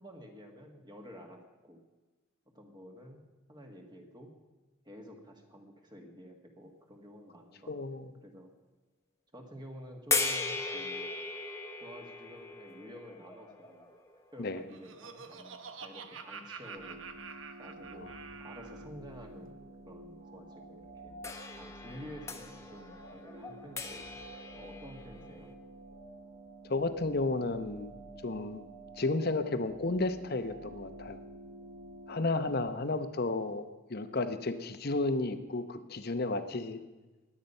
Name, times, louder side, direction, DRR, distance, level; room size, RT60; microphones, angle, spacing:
voice 1, 0.0-1.8 2.4-3.2 3.5-4.3 4.8-8.5 9.3-11.2 11.8-13.9 14.3-17.0 17.6-18.2 18.4-19.6 19.9-21.2 21.6-24.1 24.5-25.5, equal, 20° right, 2 dB, 1.6 m, -50 dB
voice 2, 7.7-8.0 14.4-14.6 18.0-18.1 26.6-27.9 28.2-28.6 29.0-31.2 32.1-36.8, left 2 dB, 50° left, 10 dB, 0.9 m, -32 dB
sound 1, 10.1-15.2 16.0-16.1 21.2-25.5, left 3 dB, 15° left, 1.1 m, -38 dB
Laughter, 14.4-18.9, right 5 dB, 80° right, 1.0 m, -47 dB
sound 2, 16.7-32.6, right 2 dB, 60° right, 3.3 m, -50 dB
21.0 x 8.5 x 5.5 m, 1.2 s
head